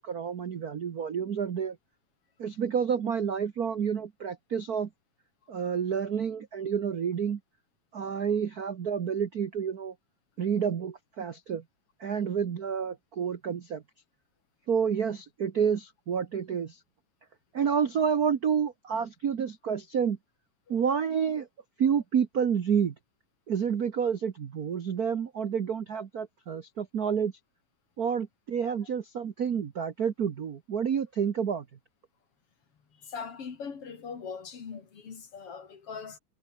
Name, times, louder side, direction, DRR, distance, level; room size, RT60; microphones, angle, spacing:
voice 1, 0.0-1.8 2.4-4.9 5.5-7.4 7.9-9.9 10.4-11.6 12.0-13.8 14.7-16.8 17.5-20.2 20.7-21.5 21.8-22.9 23.5-27.3 28.0-31.6, right 7 dB, 75° right, 0.8 m, -29 dB
voice 2, 33.0-36.2, left 6 dB, 50° left, 3.5 m, -40 dB
omnidirectional pair, 3.5 m